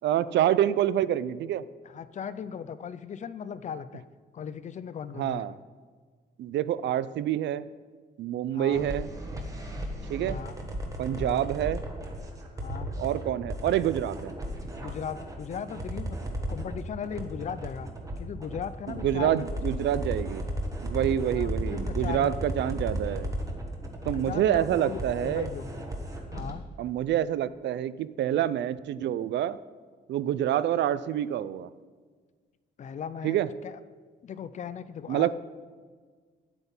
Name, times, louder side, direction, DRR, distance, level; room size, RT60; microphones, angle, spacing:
voice 1, 0.0-1.6 5.2-5.5 6.4-7.6 8.2-9.1 10.1-10.4 11.0-11.8 13.0-14.3 19.0-20.5 20.8-23.3 24.1-25.5 26.8-29.6 30.1-31.7 33.2-33.5 35.1-35.3, right 11 dB, 75° right, 16 dB, 0.4 m, -27 dB
voice 2, 1.8-4.0 4.3-5.6 8.5-8.9 10.2-10.6 11.1-11.4 12.6-12.9 14.7-16.2 16.5-17.9 18.2-19.7 21.3-22.6 24.0-25.8 26.3-26.6 32.8-33.8 34.2-35.3, left 7 dB, 40° left, 14 dB, 0.4 m, -38 dB
sound 1, 8.7-26.5, right 1 dB, 20° right, 1.2 m, -35 dB
10.0 x 8.1 x 5.4 m, 1.5 s
cardioid pair, 160°, 19 cm